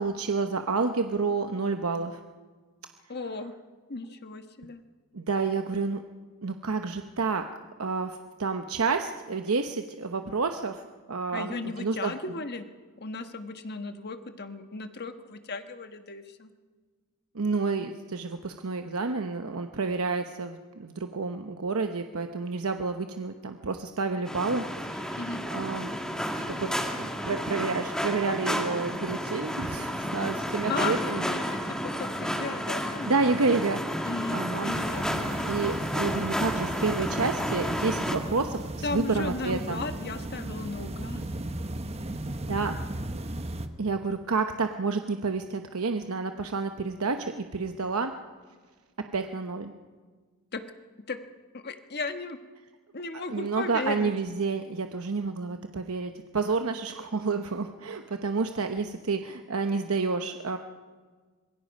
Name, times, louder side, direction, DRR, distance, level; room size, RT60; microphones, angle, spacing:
voice 1, 0.0-2.2 5.1-6.0 6.4-7.4 7.8-12.1 17.3-25.2 25.5-25.9 26.6-31.2 33.1-33.8 34.3-34.7 35.4-39.8 42.4-42.8 43.8-48.1 49.1-49.7 53.3-60.6, right 4 dB, 75° right, 6 dB, 0.9 m, -29 dB
voice 2, 3.1-3.5 3.9-4.8 11.3-12.7 13.0-16.5 25.2-25.5 30.7-33.4 34.0-35.4 38.8-41.3 50.5-50.6 51.1-51.2 51.5-52.4 52.9-54.1, left 3 dB, 50° left, 7 dB, 1.4 m, -36 dB
sound 1, 24.3-38.2, equal, 5° left, 2.1 m, -31 dB
sound 2, 34.7-43.7, right 1 dB, 30° right, 1.1 m, -36 dB
26.0 x 22.0 x 5.4 m, 1.5 s
head